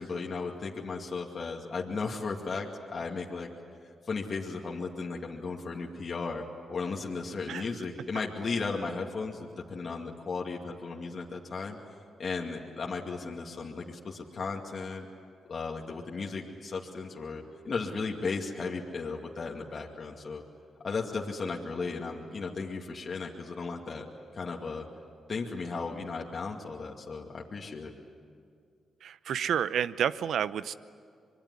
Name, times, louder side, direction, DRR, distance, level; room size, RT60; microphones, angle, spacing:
voice 1, 0.0-3.5 4.0-6.4 6.7-11.8 12.2-15.1 15.5-20.4 20.8-24.1 24.3-24.9 25.3-27.9, left 4 dB, 50° left, 0 dB, 2.3 m, -35 dB
voice 2, 29.0-30.7, right 9 dB, 75° right, 16 dB, 0.7 m, -30 dB
25.5 x 22.0 x 9.8 m, 2.2 s
cardioid pair, 65°, 0 cm